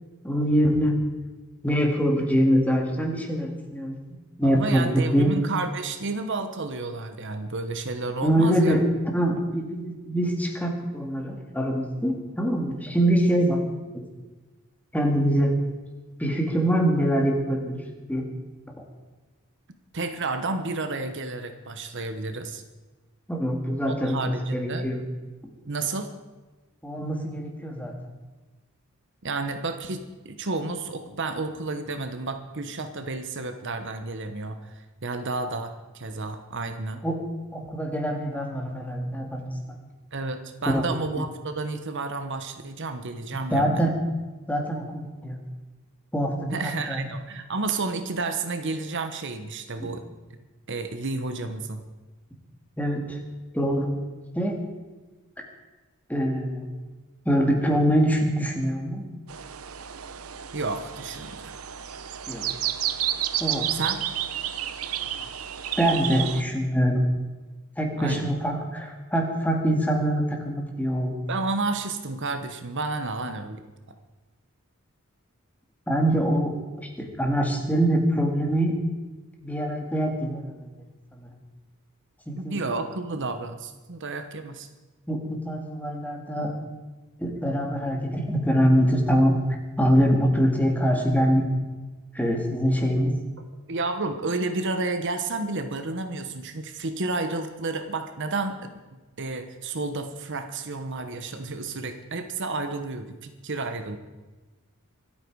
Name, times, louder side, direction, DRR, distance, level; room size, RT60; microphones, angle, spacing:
voice 1, 0.2-1.0 1.6-3.9 4.4-5.3 8.2-8.9 9.1-13.7 14.9-15.6 16.2-17.8 18.1-18.3 23.3-25.0 26.8-27.9 37.0-37.2 37.5-39.6 40.7-40.9 43.5-43.9 44.5-45.4 46.1-47.0 49.8-49.9 52.8-53.2 53.5-53.9 54.3-54.6 55.4-55.5 56.1-56.7 57.3-59.1 62.3-62.5 63.4-63.7 65.8-67.0 67.8-71.3 75.9-78.7 79.4-80.7 81.1-81.3 82.3-82.6 85.1-86.5 87.2-89.4 89.8-91.4 92.1-93.1, equal, 5° left, 2 dB, 2.1 m, -24 dB
voice 2, 4.4-8.8 19.9-22.6 23.9-24.9 25.7-26.1 29.2-37.0 40.1-43.8 46.5-50.0 50.7-51.8 60.5-61.6 63.7-64.0 68.0-68.3 71.3-73.6 82.4-84.7 93.7-98.6 99.2-104.0, right 3 dB, 55° right, 8 dB, 1.1 m, -31 dB
sound 1, 59.3-66.4, right 11 dB, 75° right, 0.8 m, -31 dB
25.0 x 8.8 x 4.8 m, 1.2 s
head